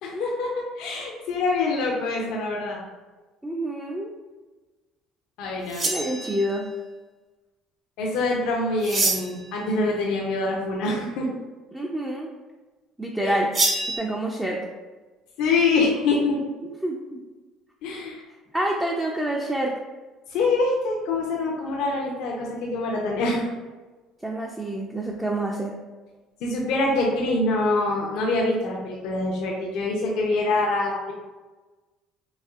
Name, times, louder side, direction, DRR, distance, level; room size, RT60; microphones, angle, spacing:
voice 1, 0.0-2.8 5.4-5.9 8.0-11.3 13.2-13.4 15.4-16.4 17.8-18.2 20.3-23.5 26.4-31.1, left 3 dB, 75° left, -2 dB, 0.6 m, -25 dB
voice 2, 3.4-4.1 5.8-6.7 11.7-12.3 13.0-13.5 14.0-14.6 16.6-17.2 18.5-19.7 24.2-25.8, right 1 dB, 10° right, -2 dB, 0.4 m, -27 dB
sound 1, 5.7-6.6 8.8-9.5 13.5-14.0, right 2 dB, 35° right, 0.8 m, -25 dB
4.1 x 2.9 x 2.4 m, 1.3 s
cardioid pair, 105°, 0 cm